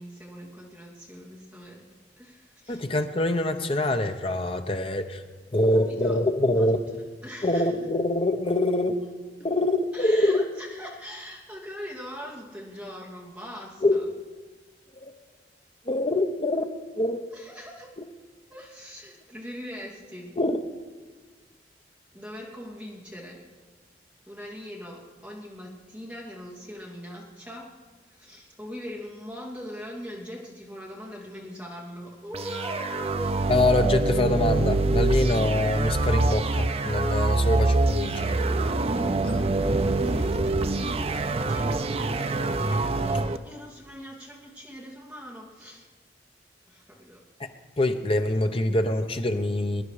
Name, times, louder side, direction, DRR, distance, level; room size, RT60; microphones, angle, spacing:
voice 1, 0.0-1.8 2.2-2.9 5.7-6.2 6.6-7.7 9.9-14.0 17.3-17.9 18.5-20.4 22.1-23.4 24.3-27.7 28.1-33.4 39.3-45.9 46.7-47.2, equal, 5° right, -4 dB, 2.7 m, -41 dB
voice 2, 2.7-5.2 5.5-6.8 7.4-9.0 9.4-10.4 13.8-14.0 15.1-15.2 15.9-17.3 20.4-20.6 33.5-38.7 47.8-49.8, left 1 dB, 30° left, 7 dB, 0.9 m, -24 dB
sound 1, 32.3-43.4, right 2 dB, 35° right, 0.5 m, -25 dB
22.0 x 10.5 x 4.9 m, 1.4 s
head